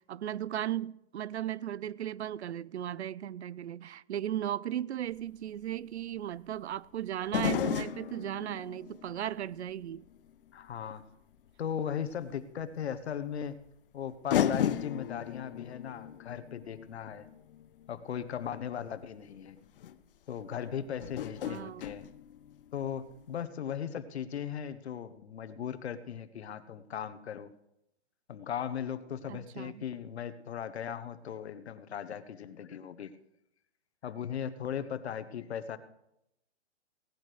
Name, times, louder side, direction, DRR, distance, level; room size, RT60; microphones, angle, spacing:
voice 1, 0.0-10.0 21.4-21.9 29.3-29.8, right 11 dB, 75° right, 0.6 m, -36 dB
sound 1, 5.1-5.2 7.3-10.3 10.7-10.8 12.3-12.4 13.7-13.8 14.3-18.4 19.4-19.5 19.8-20.0 21.0-22.9 23.2-23.3, left 10 dB, 55° left, 0.7 m, -35 dB
voice 2, 10.5-11.0 11.6-13.6 13.9-17.3 17.9-19.6 20.3-22.0 22.7-27.5 28.3-33.1 34.0-35.8, left 8 dB, 70° left, 1.2 m, -38 dB
17.0 x 12.0 x 3.4 m
hypercardioid pair, 155°, 34 cm